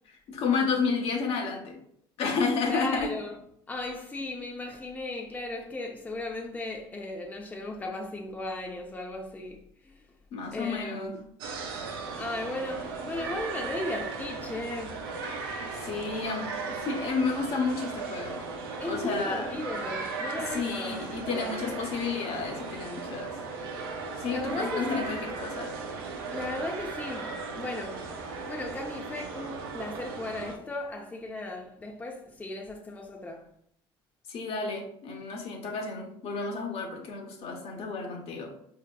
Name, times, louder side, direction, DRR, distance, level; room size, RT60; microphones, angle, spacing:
voice 1, 0.1-1.7 2.2-3.1 10.3-11.1 15.8-18.4 18.8-19.6 20.5-23.4 24.2-25.7 34.3-38.5, left 4 dB, 55° left, 0.9 m, -31 dB
voice 2, 2.7-3.4 3.7-10.0 10.5-11.2 12.2-15.0 18.8-21.9 24.2-25.2 26.3-28.0 28.5-33.5, left 2 dB, 15° left, 0.6 m, -36 dB
sound 1, 11.4-30.6, right 4 dB, 90° right, 0.5 m, -37 dB
4.8 x 2.8 x 2.3 m
supercardioid pair, 80°, 12 cm